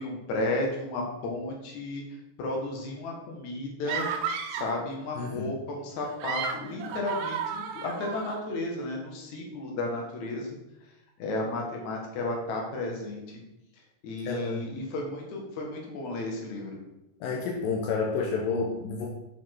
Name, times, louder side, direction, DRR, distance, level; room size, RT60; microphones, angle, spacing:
voice 1, 0.0-4.1 4.5-13.4 13.7-16.8, left 2 dB, 60° left, 0 dB, 2.9 m, -33 dB
sound 1, 3.9-4.8 6.0-8.4, right 7 dB, 75° right, 2.1 m, -33 dB
voice 2, 5.2-5.5 14.3-14.7 17.2-19.1, left 4 dB, 80° left, 0 dB, 2.7 m, -30 dB
7.3 x 5.8 x 6.0 m, 0.91 s
omnidirectional pair, 4.1 m